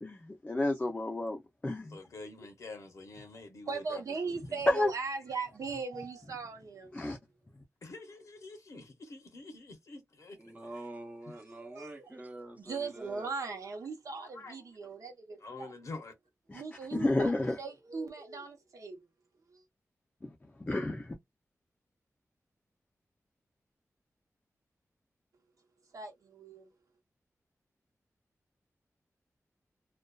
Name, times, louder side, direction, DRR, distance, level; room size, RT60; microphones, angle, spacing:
voice 1, 0.0-2.0 4.7-4.9 6.9-7.2 16.5-16.6 16.9-17.6 20.6-21.1, left 2 dB, 20° left, 0.4 m, -30 dB
voice 2, 1.9-4.6 7.8-10.4 14.2-14.5 15.4-16.1, left 3 dB, 70° left, 0.6 m, -47 dB
voice 3, 3.7-6.9 11.5-12.1 12.6-15.7 16.5-17.3 17.6-19.1 19.5-19.6 25.9-26.7, right 4 dB, 80° right, 0.8 m, -39 dB
voice 4, 10.3-13.3, right 1 dB, 25° right, 0.7 m, -46 dB
2.5 x 2.2 x 2.2 m
wide cardioid pair, 105°, 6 cm